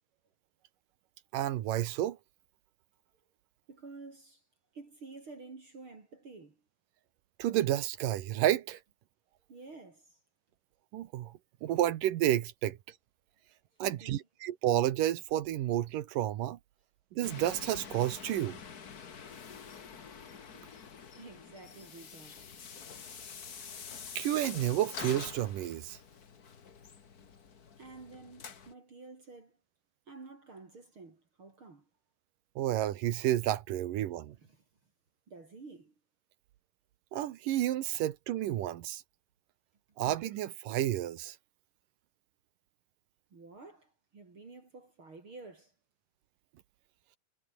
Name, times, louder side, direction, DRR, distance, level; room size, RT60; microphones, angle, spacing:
voice 1, 1.3-2.2 7.4-8.8 10.9-11.3 11.6-12.8 13.8-16.6 17.1-18.6 24.2-26.0 32.6-34.4 37.1-39.0 40.0-41.4, right 13 dB, 70° right, 2.5 m, -30 dB
voice 2, 3.7-4.4 4.7-6.6 9.5-10.2 13.8-14.2 21.1-22.4 27.8-29.6 30.1-31.9 34.4-34.6 35.3-35.9 43.3-45.7, right 3 dB, 35° right, 3.8 m, -50 dB
sound 1, 17.2-28.7, left 6 dB, 55° left, 1.0 m, -47 dB
omnidirectional pair, 4.4 m